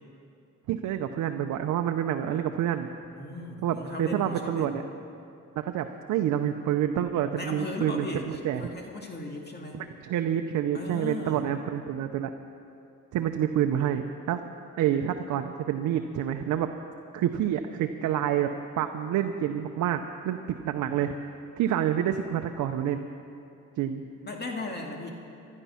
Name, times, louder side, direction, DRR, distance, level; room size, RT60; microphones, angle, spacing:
voice 1, 0.7-2.9 3.6-4.8 5.6-8.1 8.4-8.6 9.7-12.3 13.1-14.4 14.8-16.7 17.1-18.5 18.8-21.1 21.6-23.1 23.8-24.0, right 10 dB, 80° right, 6 dB, 0.7 m, -28 dB
voice 2, 3.0-4.8 7.4-9.8 10.7-11.5 24.2-25.1, left 2 dB, 35° left, 1 dB, 2.1 m, -37 dB
16.0 x 12.0 x 5.7 m, 2.6 s
cardioid pair, 90°, 30 cm